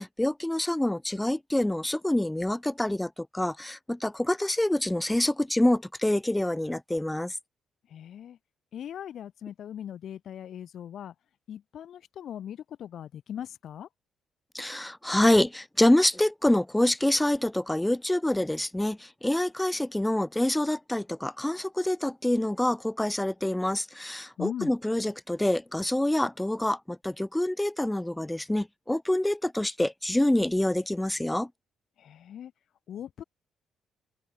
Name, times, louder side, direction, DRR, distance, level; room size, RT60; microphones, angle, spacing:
voice 1, 0.0-7.4 14.5-31.5, left 1 dB, 10° left, 1.2 m, -26 dB
voice 2, 7.9-8.4 8.7-11.1 11.5-13.9 24.4-24.7 32.0-32.5 32.9-33.2, left 9 dB, 65° left, 3.6 m, -39 dB
cardioid pair, 90°, 0 cm